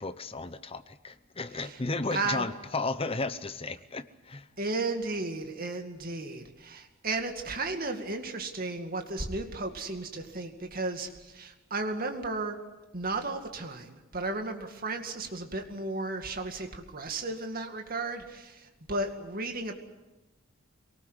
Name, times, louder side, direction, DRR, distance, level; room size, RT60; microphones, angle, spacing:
voice 1, 0.0-4.5, left 3 dB, 25° left, 12 dB, 0.9 m, -34 dB
voice 2, 2.1-2.5 4.6-12.6 12.9-19.7, right 3 dB, 45° right, 5 dB, 2.2 m, -34 dB
23.0 x 19.0 x 8.2 m, 1.1 s
head